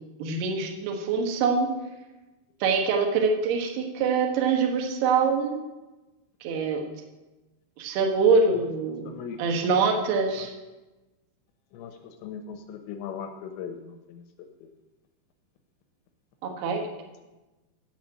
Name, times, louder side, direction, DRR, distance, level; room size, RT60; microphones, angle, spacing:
voice 1, 0.2-1.7 2.6-5.6 6.4-6.9 7.8-9.1 9.4-10.5 16.4-16.9, right 4 dB, 65° right, 3 dB, 2.8 m, -24 dB
voice 2, 9.0-9.4 11.7-14.2 14.6-14.7, left 7 dB, 85° left, 6 dB, 2.7 m, -39 dB
9.2 x 7.3 x 7.7 m, 1.1 s
omnidirectional pair, 5.8 m